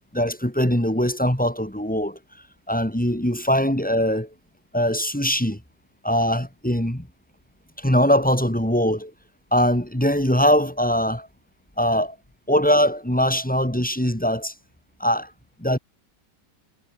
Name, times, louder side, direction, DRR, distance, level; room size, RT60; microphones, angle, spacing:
voice 1, 0.1-2.2 2.7-4.3 4.7-5.6 6.0-7.1 7.8-9.1 9.5-11.3 11.8-12.2 12.5-14.5 15.0-15.3 15.6-15.8, equal, 5° left, 2.7 m, -21 dB
omnidirectional pair, 1.9 m